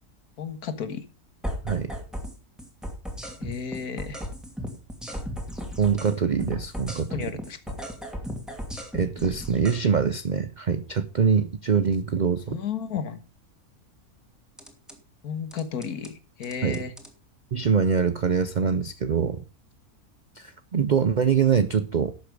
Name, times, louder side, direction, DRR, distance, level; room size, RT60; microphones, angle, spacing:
voice 1, 0.4-1.0 3.4-4.2 7.0-7.8 12.5-13.2 15.2-16.9, left 7 dB, 90° left, 10 dB, 1.9 m, -33 dB
sound 1, 1.4-2.3 2.6-6.1 6.4-9.8 14.6-14.9 15.5-16.1 16.4-17.1, equal, ahead, 2.5 m, -35 dB
voice 2, 5.8-7.3 8.9-12.6 16.6-16.8 17.5-19.4 20.4-22.1, right 6 dB, 50° right, 12 dB, 0.5 m, -24 dB
12.0 x 8.3 x 5.1 m, 0.33 s
omnidirectional pair, 1.6 m